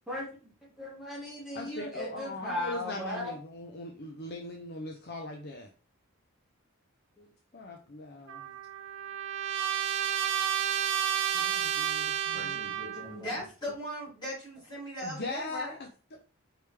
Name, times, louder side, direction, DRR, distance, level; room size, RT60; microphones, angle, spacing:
voice 1, 0.1-0.5 0.8-3.3 7.2-7.3 12.3-13.4, left 1 dB, ahead, -6 dB, 1.5 m, -38 dB
voice 2, 1.5-5.7 7.5-8.6 11.3-12.7 15.0-16.2, left 2 dB, 45° left, 3 dB, 0.6 m, -40 dB
Trumpet, 8.3-13.2, right 9 dB, 55° right, 0.5 m, -31 dB
voice 3, 13.1-15.7, equal, 20° left, -6 dB, 2.6 m, -38 dB
4.9 x 3.3 x 3.2 m, 0.36 s
head